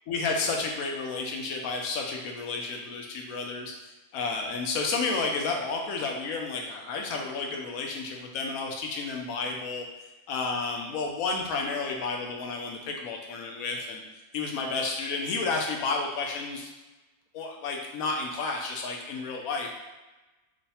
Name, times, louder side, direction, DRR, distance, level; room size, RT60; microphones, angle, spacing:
voice 1, 0.1-3.7 4.1-9.8 10.3-14.0 14.3-16.7 17.3-19.7, left 3 dB, 75° left, 1 dB, 1.0 m, -31 dB
3.1 x 2.1 x 4.1 m, 1.1 s
omnidirectional pair, 1.6 m